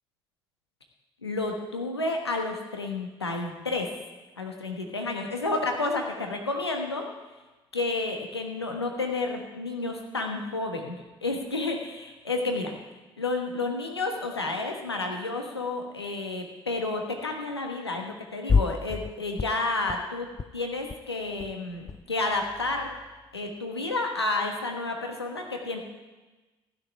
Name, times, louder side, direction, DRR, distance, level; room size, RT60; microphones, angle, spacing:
voice 1, 1.2-3.9 4.4-7.0 7.7-12.7 13.2-22.9 23.3-25.8, left 2 dB, 90° left, 3 dB, 1.3 m, -31 dB
sound 1, 18.5-19.1 19.4-20.0 20.3-20.5 20.8-20.9 21.2-22.0 22.3-23.3, left 5 dB, 30° left, 0.6 m, -29 dB
15.5 x 6.6 x 9.9 m, 1.2 s
figure-of-eight pair, 45°, 13 cm